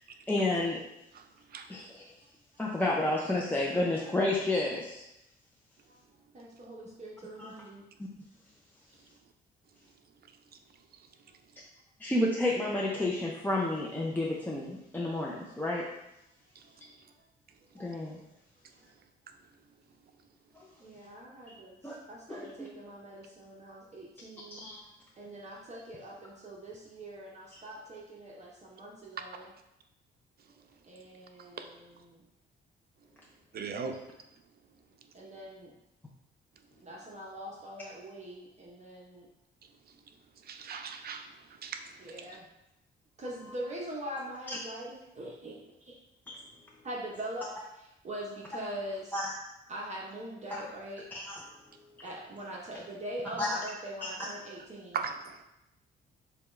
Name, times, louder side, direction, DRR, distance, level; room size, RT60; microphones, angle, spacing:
voice 1, 0.3-0.8 1.7-2.1 2.6-5.0 7.4-7.5 12.0-15.9 17.7-18.2 20.6-20.7 21.8-22.0 22.3-22.7 24.5-24.8 46.3-46.4 49.1-49.3 51.1-51.4 53.4-53.6 54.0-54.1, left 2 dB, 10° left, -4 dB, 0.6 m, -30 dB
voice 2, 6.3-7.8 8.9-9.0 20.8-24.6 25.2-29.5 30.8-32.2 35.1-35.7 36.8-39.3 42.0-42.4 43.2-46.0 46.8-47.5 47.8-49.1 49.7-51.0 52.0-55.0, right 1 dB, 35° right, -3 dB, 0.9 m, -42 dB
voice 3, 33.5-33.9 40.5-41.3 41.6-41.9 54.9-55.4, right 6 dB, 50° right, 6 dB, 0.6 m, -37 dB
6.8 x 2.3 x 3.2 m, 0.89 s
cardioid pair, 90°, 20 cm